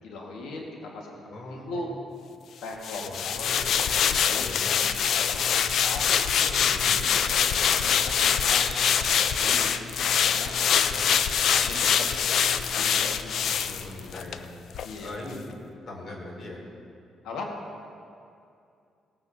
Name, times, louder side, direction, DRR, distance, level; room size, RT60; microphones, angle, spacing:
voice 1, 0.0-1.9 2.6-3.5 4.1-6.1 6.3-6.5 7.3-10.6 11.5-12.1 12.6-13.6 14.8-15.2 17.2-17.6, left 2 dB, 85° left, 0 dB, 1.5 m, -40 dB
voice 2, 1.3-1.8 3.0-3.6 4.4-4.7 6.7-7.0 10.9-11.1 13.5-14.5 15.0-15.4 15.9-16.6, left 2 dB, 50° left, -2 dB, 2.9 m, -41 dB
sound 1, 2.8-14.4 14.7-14.9, left 8 dB, 70° left, 0.4 m, -24 dB
Chicken rooster, 7.1-9.5 10.0-12.4, right 1 dB, 10° left, 2.5 m, -46 dB
17.5 x 8.9 x 2.7 m, 2.5 s
cardioid pair, 90°, 0 cm